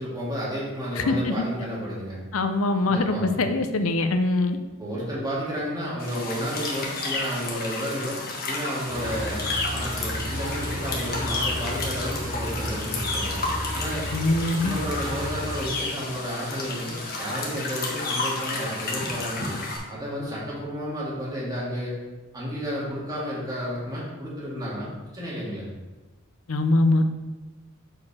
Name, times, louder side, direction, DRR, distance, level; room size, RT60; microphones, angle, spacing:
voice 1, 0.0-2.2 2.8-3.2 4.8-9.5 9.7-13.4 13.7-14.1 14.6-19.6 19.9-21.9 22.3-24.9 25.1-25.6, equal, 20° right, -7 dB, 2.0 m, -32 dB
voice 2, 1.0-1.4 2.3-4.6 14.1-14.7 26.5-27.1, left 2 dB, 75° left, 8 dB, 0.6 m, -23 dB
sound 1, 6.0-19.8, left 3 dB, 45° left, 1.4 m, -31 dB
sound 2, 8.9-15.7, equal, 45° right, 1.7 m, -33 dB
6.5 x 4.9 x 4.3 m, 1.2 s
head